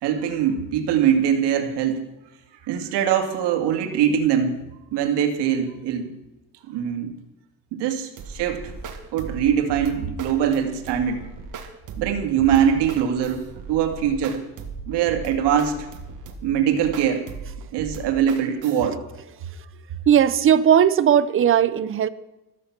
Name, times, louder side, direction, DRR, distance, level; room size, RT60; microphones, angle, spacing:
voice 1, 0.0-2.0 2.6-4.6 4.9-6.1 6.7-7.1 7.7-8.7 9.1-11.2 12.0-14.4 14.9-15.9 16.4-17.3 17.7-19.0, right 8 dB, 80° right, 5 dB, 2.3 m, -22 dB
sound 1, 8.2-18.8, right 5 dB, 45° right, 2.0 m, -38 dB
voice 2, 20.1-22.1, right 9 dB, 30° right, 15 dB, 0.5 m, -17 dB
14.0 x 13.5 x 5.9 m, 0.95 s
cardioid pair, 165°, 41 cm